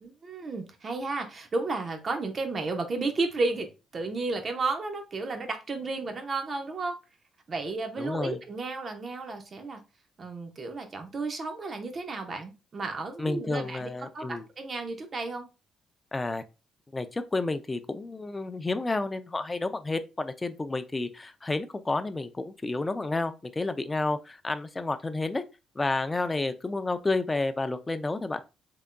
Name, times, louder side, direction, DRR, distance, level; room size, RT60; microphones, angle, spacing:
voice 1, 0.0-7.0 7.5-9.8 10.2-15.5, right 3 dB, 40° right, 0.9 m, -33 dB
voice 2, 8.0-8.4 13.2-14.5 16.1-16.4 16.9-25.4 25.8-28.4, left 2 dB, 20° left, 0.4 m, -30 dB
3.8 x 3.4 x 2.2 m
cardioid pair, 90°, 0 cm